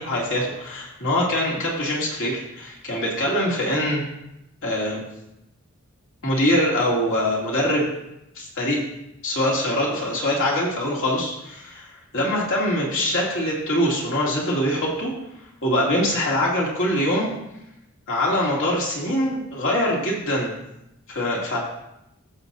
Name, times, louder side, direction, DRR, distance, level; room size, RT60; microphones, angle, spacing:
voice 1, 0.0-4.0 4.6-5.0 6.2-7.9 8.4-8.8 9.2-11.9 12.1-15.1 15.6-17.3 18.1-20.5 21.1-21.6, left 1 dB, 60° left, -4 dB, 2.6 m, -23 dB
14.0 x 6.9 x 2.7 m, 0.85 s
head